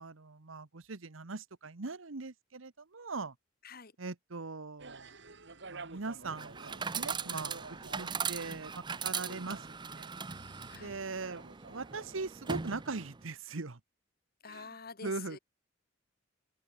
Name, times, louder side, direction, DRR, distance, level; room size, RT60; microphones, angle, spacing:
voice 1, 0.0-3.3 4.0-5.1 5.7-9.6 9.9-10.1 10.8-11.4 11.7-13.8 14.5-14.6 15.0-15.4, right 3 dB, 85° right, 1.2 m, -40 dB
sound 1, 4.8-12.5, right 3 dB, 65° right, 3.0 m, -52 dB
Chatter / Coin (dropping), 6.2-13.3, right 6 dB, 25° right, 0.7 m, -40 dB
voice 2, 14.4-15.4, left 5 dB, 50° left, 2.4 m, -47 dB
open air
head